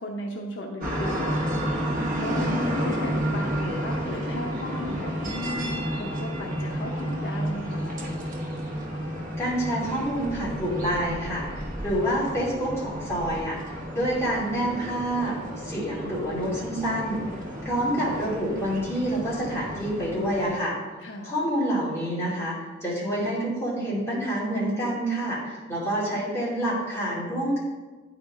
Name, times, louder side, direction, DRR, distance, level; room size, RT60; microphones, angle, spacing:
voice 1, 0.0-1.8 2.2-7.8 21.0-21.4, left 1 dB, 65° left, 1 dB, 0.7 m, -36 dB
sound 1, 0.8-20.6, equal, 45° right, 1.3 m, -31 dB
voice 2, 9.4-17.2 17.6-20.8 21.2-27.6, right 1 dB, 15° left, -7 dB, 2.5 m, -27 dB
9.7 x 4.9 x 3.5 m, 1.3 s
head